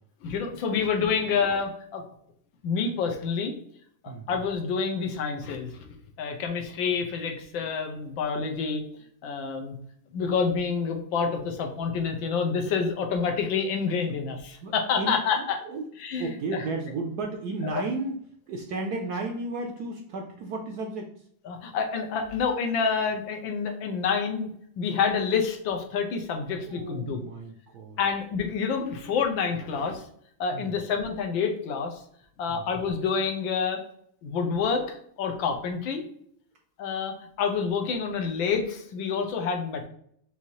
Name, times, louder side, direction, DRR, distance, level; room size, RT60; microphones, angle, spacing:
voice 1, 0.2-2.0 2.6-3.5 4.0-5.9 6.2-8.8 9.2-9.8 10.1-15.6 16.0-16.3 17.6-17.8 21.4-24.5 24.8-27.2 28.0-30.0 30.4-32.0 32.4-33.8 34.2-36.0 36.8-39.9, left 5 dB, 80° left, 3 dB, 1.5 m, -28 dB
voice 2, 14.6-15.2 15.7-15.8 16.2-18.2 18.5-21.1 26.7-28.0 30.5-30.7 32.5-32.6, right 3 dB, 70° right, 2 dB, 0.9 m, -33 dB
5.5 x 2.8 x 3.0 m, 0.66 s
omnidirectional pair, 2.2 m